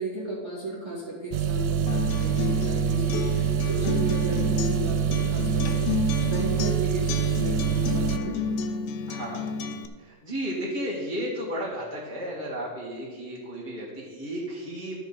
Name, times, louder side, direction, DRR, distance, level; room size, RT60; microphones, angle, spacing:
voice 1, 0.0-3.3 3.6-5.9 6.2-8.4, right 1 dB, 10° right, -5 dB, 1.5 m, -33 dB
sound 1, 1.3-8.2, right 9 dB, 80° right, 1.6 m, -26 dB
Acoustic guitar, 1.9-9.9, left 5 dB, 80° left, 1.7 m, -31 dB
voice 2, 9.1-9.4 10.0-15.0, equal, 20° left, -7 dB, 1.4 m, -33 dB
12.5 x 7.0 x 4.2 m, 1.4 s
omnidirectional pair, 3.7 m